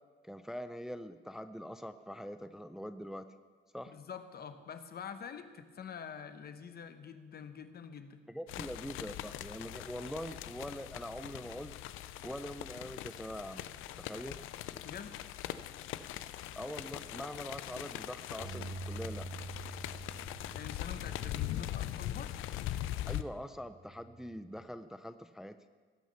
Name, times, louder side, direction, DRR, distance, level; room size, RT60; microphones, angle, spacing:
voice 1, 0.2-3.3 3.7-4.0 8.3-11.7 12.2-14.4 16.5-19.3 23.1-25.6, equal, ahead, 10 dB, 0.4 m, -43 dB
voice 2, 3.9-8.2 14.8-15.2 20.5-22.3, left 7 dB, 50° left, 10 dB, 1.0 m, -46 dB
sound 1, 8.5-23.2, left 13 dB, 90° left, 0.5 m, -41 dB
Bass guitar, 18.4-22.9 23.5-24.6, right 2 dB, 75° right, 2.2 m, -47 dB
18.0 x 6.2 x 5.6 m, 1.5 s
cardioid pair, 90°, 20 cm